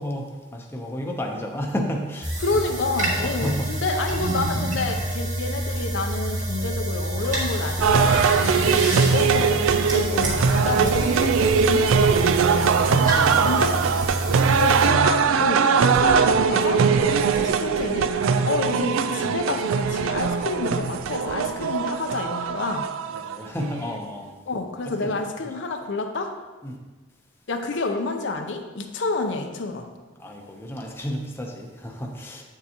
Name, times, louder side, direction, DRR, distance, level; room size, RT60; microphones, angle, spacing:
voice 1, 0.0-2.3 3.2-3.7 8.4-9.0 12.6-14.6 23.1-24.3 25.0-25.1 26.6-26.8 30.2-32.4, equal, 10° left, 0 dB, 0.7 m, -32 dB
sound 1, 2.2-14.9, right 1 dB, 40° right, 1.7 m, -28 dB
voice 2, 2.4-8.5 9.0-12.2 13.4-13.8 14.5-22.9 24.5-26.3 27.5-29.9, left 3 dB, 65° left, 4 dB, 0.6 m, -29 dB
sound 2, 7.8-23.9, right 6 dB, 90° right, 0.4 m, -21 dB
8.1 x 6.8 x 2.9 m, 1.2 s
head